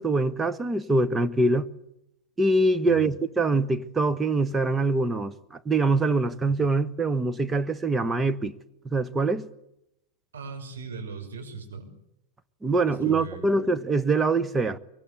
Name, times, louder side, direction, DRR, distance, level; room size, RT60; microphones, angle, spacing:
voice 1, 0.0-1.6 2.4-5.3 5.6-8.5 8.8-9.5 12.6-14.8, right 3 dB, 15° right, 1.3 m, -24 dB
voice 2, 10.3-11.9 12.8-13.6, right 4 dB, 65° right, 6.3 m, -38 dB
24.5 x 23.0 x 8.4 m
figure-of-eight pair, 90°, 0 cm